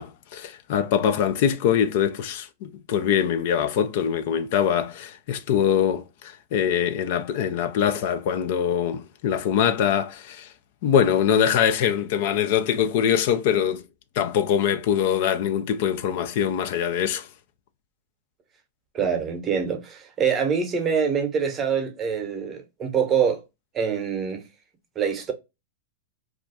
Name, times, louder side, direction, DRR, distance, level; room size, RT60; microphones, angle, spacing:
voice 1, 0.0-10.5 10.8-13.8 14.2-17.3, left 9 dB, 60° left, 0.4 m, -23 dB
voice 2, 18.9-23.4 23.7-24.4 25.0-25.3, right 7 dB, 25° right, 0.8 m, -25 dB
2.4 x 2.3 x 4.0 m
hypercardioid pair, 120°, 0 cm